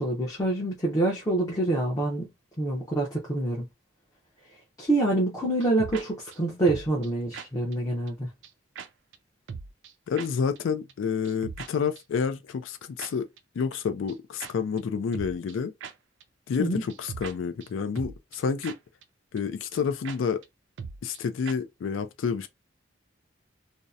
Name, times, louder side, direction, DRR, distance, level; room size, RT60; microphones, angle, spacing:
voice 1, 0.0-2.3 2.6-3.7 4.8-8.3 16.6-16.8, right 2 dB, 20° left, 0.6 m, -26 dB
sound 1, 5.6-6.0 6.3-6.4 6.7-7.1 7.3-7.5 7.7-7.8 8.1-8.2 8.4-8.5 8.8-8.9 9.1-9.2 9.5-9.9 10.2-10.3 10.6-10.7 10.9-11.0 11.2-11.7 12.0-12.1 13.0-13.1 13.4-13.5 13.7-13.8 14.1-14.2 14.4-14.5 14.8-14.9 15.1-15.5 15.8-15.9 16.2-16.3 16.5-16.6 16.9-17.3 17.6-17.7 18.0-18.4 18.6-18.8 19.0-19.1 19.4-19.5 19.7-19.8 20.0-20.2 20.4-20.5 20.8-21.2 21.5-21.6, right 6 dB, 70° right, 0.3 m, -39 dB
voice 2, 10.1-13.3 13.5-15.7 16.5-18.8 19.3-20.4 21.0-22.5, left 6 dB, 85° left, 0.4 m, -29 dB
2.7 x 2.0 x 2.3 m
head